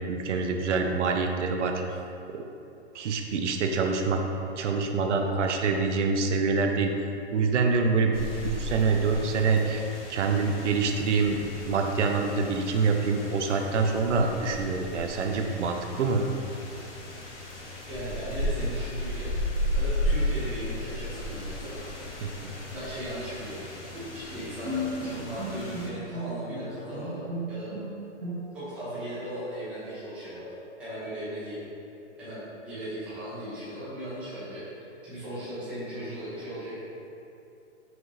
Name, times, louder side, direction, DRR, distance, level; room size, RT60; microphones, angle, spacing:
voice 1, 0.1-2.0 2.3-2.5 2.9-4.2 4.6-6.9 7.3-8.1 8.4-9.8 10.1-11.4 11.6-16.3 22.2-22.5, right 4 dB, 80° right, 4 dB, 0.6 m, -26 dB
sound 1, 8.1-25.9, left 1 dB, 80° left, 1.1 m, -35 dB
voice 2, 17.9-19.3 19.7-21.8 22.7-23.6 24.1-27.7 28.5-30.5 30.8-31.6 32.2-34.6 35.0-36.7, equal, 5° right, -13 dB, 0.5 m, -37 dB
Bowed string instrument, 23.9-28.8, equal, 55° right, 1.4 m, -36 dB
5.9 x 2.6 x 3.1 m, 2.7 s
hypercardioid pair, 160°, 35 cm